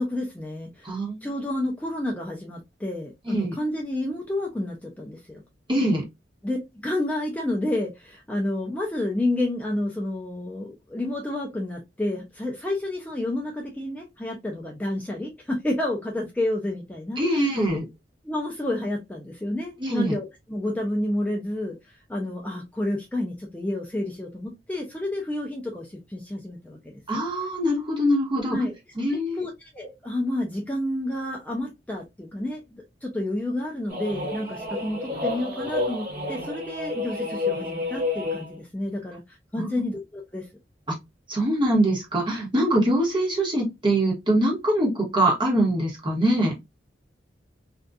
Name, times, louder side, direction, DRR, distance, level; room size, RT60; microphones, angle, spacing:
voice 1, 0.0-0.9 1.2-5.4 6.4-17.2 18.2-26.8 27.1-27.2 28.5-28.7 29.1-40.5, left 1 dB, 10° left, 0.4 m, -30 dB
voice 2, 0.8-1.2 3.3-3.6 5.7-6.0 17.2-17.8 19.8-20.1 27.1-28.6 29.0-29.4 39.6-39.7 40.9-41.0 41.3-46.5, right 1 dB, 25° right, 1.1 m, -23 dB
sound 1, 33.9-38.6, left 2 dB, 55° right, 1.0 m, -30 dB
2.6 x 2.3 x 2.2 m
head